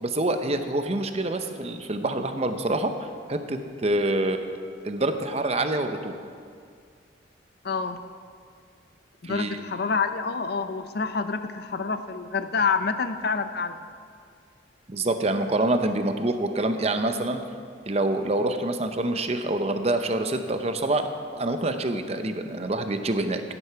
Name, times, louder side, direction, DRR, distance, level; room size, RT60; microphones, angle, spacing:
voice 1, 0.0-4.5 4.8-6.2 9.2-9.6 14.9-17.4 17.9-23.4, right 2 dB, 30° right, 7 dB, 0.7 m, -26 dB
voice 2, 7.6-8.0 9.2-13.9, left 5 dB, 50° left, 10 dB, 0.5 m, -27 dB
16.0 x 9.8 x 4.6 m, 2.2 s
head